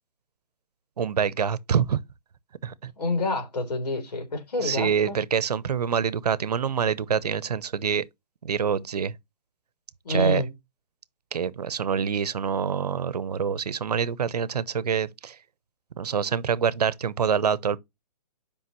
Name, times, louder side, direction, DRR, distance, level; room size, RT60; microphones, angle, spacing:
voice 1, 1.0-2.0 2.6-2.9 4.6-8.0 8.4-9.1 10.1-10.4 11.3-15.4 16.0-17.8, right 7 dB, 70° right, 0.8 m, -26 dB
voice 2, 3.0-5.2 10.0-10.5, left 2 dB, 70° left, 3.9 m, -27 dB
8.7 x 5.2 x 3.1 m
hypercardioid pair, 180°, 21 cm